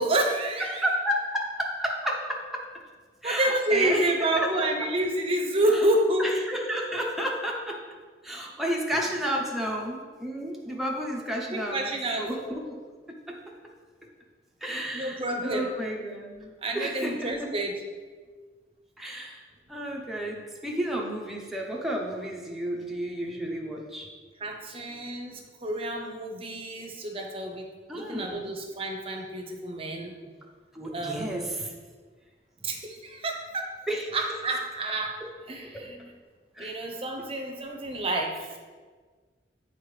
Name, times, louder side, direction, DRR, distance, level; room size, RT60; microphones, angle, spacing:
voice 1, 0.0-0.8 3.2-6.3 11.5-12.3 14.9-15.7 16.6-17.7 24.4-27.7 27.9-30.1 30.9-31.5 32.6-33.7 34.1-35.2 35.5-36.0 36.6-38.3, right 1 dB, 30° right, 3 dB, 0.7 m, -28 dB
voice 2, 0.6-2.6 3.2-4.5 5.7-5.8 6.2-7.8 8.2-12.8 13.3-13.4 14.6-17.5 19.0-19.4 19.7-24.1 24.7-24.8 27.9-28.5 30.7-31.7 33.9-34.1 35.7-35.9 36.6-36.8, equal, ahead, -2 dB, 0.7 m, -32 dB
7.9 x 4.4 x 3.3 m, 1.5 s
head